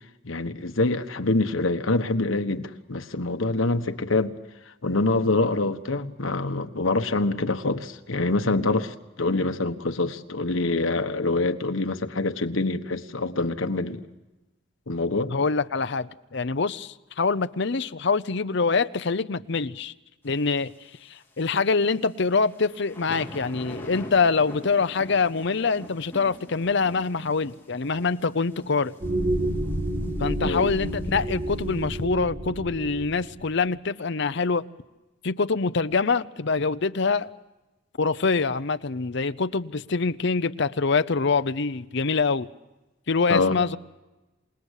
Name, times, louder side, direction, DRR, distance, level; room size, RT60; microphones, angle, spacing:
voice 1, 0.2-4.4 4.8-14.0 14.9-15.3 30.4-30.7 43.3-43.6, left 2 dB, 85° left, 1.4 m, -25 dB
voice 2, 15.3-19.9 20.2-20.7 21.0-28.9 30.2-34.7 35.2-37.3 38.0-42.5 43.1-43.8, left 4 dB, 60° left, 0.8 m, -25 dB
sound 1, 22.2-31.8, left 1 dB, 10° left, 3.7 m, -44 dB
sound 2, 29.0-33.5, right 1 dB, 40° right, 6.7 m, -29 dB
28.0 x 19.0 x 8.3 m
head